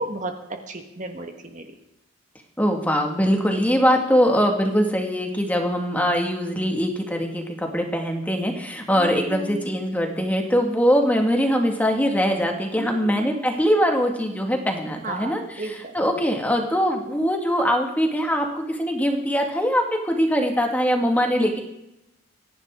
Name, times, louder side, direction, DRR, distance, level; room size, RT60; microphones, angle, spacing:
voice 1, 0.0-1.7 8.9-9.6 12.8-13.4 15.0-16.0, right 1 dB, 40° right, 4 dB, 1.5 m, -33 dB
voice 2, 2.6-21.6, equal, 10° left, 2 dB, 2.0 m, -22 dB
25.5 x 11.0 x 3.8 m, 0.87 s
head